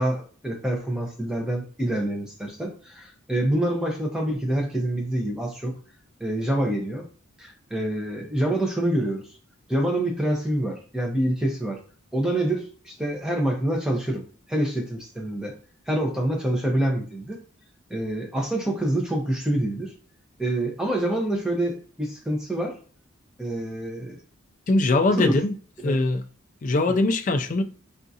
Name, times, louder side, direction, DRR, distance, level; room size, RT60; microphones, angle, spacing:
voice 1, 0.0-5.7 6.2-7.0 7.4-9.2 9.7-11.8 12.1-15.5 15.9-17.4 17.9-19.9 20.4-22.8 23.4-24.2 25.2-25.4 25.8-26.0 26.9-27.0, right 1 dB, 5° right, 0.6 m, -26 dB
voice 2, 24.7-25.5 25.8-26.2 26.6-27.6, left 2 dB, 35° left, 0.3 m, -21 dB
3.6 x 2.4 x 2.7 m
head